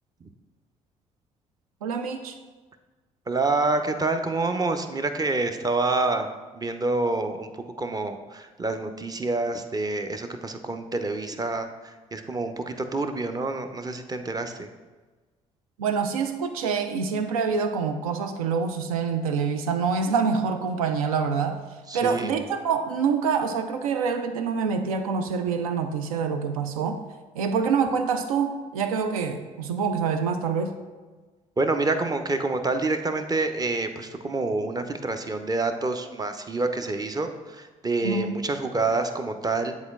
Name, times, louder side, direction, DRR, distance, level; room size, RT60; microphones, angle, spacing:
voice 1, 1.8-2.4 15.8-21.6 21.9-27.0 27.3-30.7 38.0-38.3, right 5 dB, 80° right, 8 dB, 0.5 m, -26 dB
voice 2, 3.3-6.3 6.5-7.5 7.8-14.7 21.9-22.3 31.6-39.7, right 3 dB, 20° right, 7 dB, 0.6 m, -27 dB
9.7 x 4.0 x 2.4 m, 1.3 s
figure-of-eight pair, 50°, 18 cm